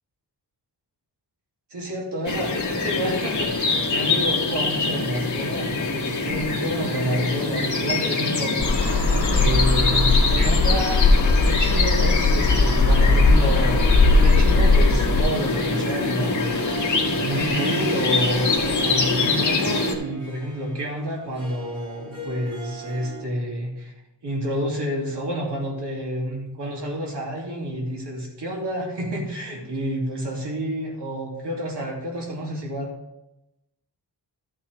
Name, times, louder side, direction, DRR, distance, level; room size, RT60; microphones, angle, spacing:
voice 1, 1.7-8.7 9.2-13.9 14.2-23.9 24.2-32.9, equal, 90° right, -2 dB, 2.8 m, -29 dB
sound 1, 2.2-19.9, left 3 dB, 45° left, 1.6 m, -25 dB
sound 2, 8.6-15.2, left 3 dB, 60° left, 1.8 m, -18 dB
Harp, 15.4-23.2, right 6 dB, 45° right, 3.8 m, -37 dB
13.5 x 5.8 x 3.5 m, 0.93 s
wide cardioid pair, 135°, 40 cm